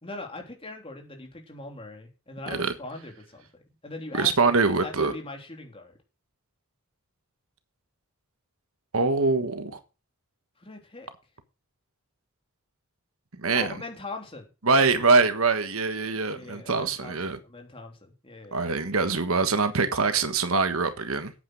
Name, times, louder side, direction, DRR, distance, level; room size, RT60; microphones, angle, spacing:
voice 1, 0.0-3.5 3.8-5.9 10.6-11.1 13.5-14.5 16.3-18.6, left 2 dB, 25° left, 3.2 m, -41 dB
voice 2, 4.1-5.1 8.9-9.8 13.4-13.7 14.6-17.4 18.5-21.3, right 4 dB, 70° right, 1.4 m, -24 dB
8.9 x 8.7 x 6.4 m
head